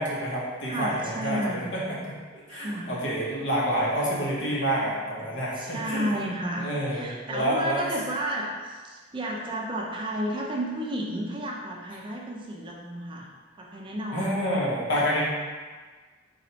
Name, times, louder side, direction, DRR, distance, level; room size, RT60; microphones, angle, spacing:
voice 1, 0.0-2.1 2.5-6.1 6.6-7.8 14.1-15.2, equal, 60° left, -5 dB, 1.2 m, -28 dB
voice 2, 0.7-1.6 2.5-2.9 5.2-5.3 5.5-13.3 13.6-14.4, right 1 dB, 25° right, -2 dB, 0.5 m, -32 dB
4.1 x 2.6 x 4.3 m, 1.4 s
head